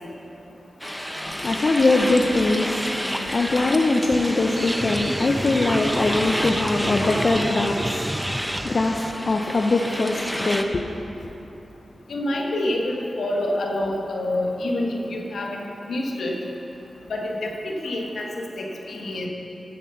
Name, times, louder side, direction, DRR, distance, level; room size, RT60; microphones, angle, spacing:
sound 1, 0.8-10.6, equal, 5° left, 0.9 m, -31 dB
voice 1, 1.3-11.3, left 2 dB, 55° left, 1 dB, 0.7 m, -22 dB
sound 2, 4.1-9.1, right 1 dB, 15° right, 0.5 m, -29 dB
voice 2, 12.1-16.3 17.1-19.3, left 1 dB, 80° left, 0 dB, 1.4 m, -27 dB
12.0 x 7.4 x 5.7 m, 2.9 s
cardioid pair, 40°, 0 cm